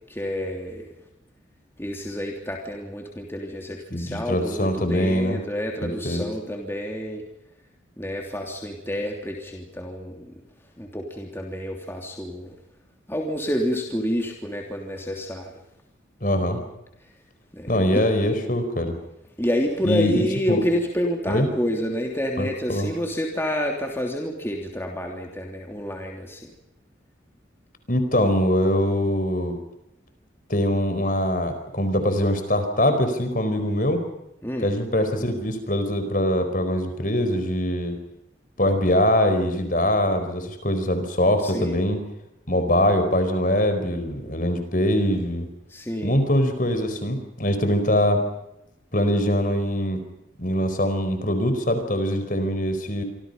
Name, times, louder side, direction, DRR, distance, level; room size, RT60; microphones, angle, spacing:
voice 1, 0.1-0.9 1.8-7.2 8.0-10.3 10.8-12.5 13.1-15.5 17.5-18.0 19.4-26.5 34.4-34.7 41.4-41.8 45.7-46.2, equal, 10° left, 1 dB, 3.2 m, -28 dB
voice 2, 3.9-5.4 5.8-6.2 16.2-16.6 17.7-19.0 19.8-20.6 21.3-21.5 22.4-22.9 27.9-29.6 30.5-34.0 34.6-38.0 38.6-42.0 42.5-45.5 46.0-48.2 48.9-50.0 50.4-53.0, left 1 dB, 45° left, 8 dB, 4.6 m, -23 dB
26.5 x 26.5 x 5.6 m, 0.86 s
head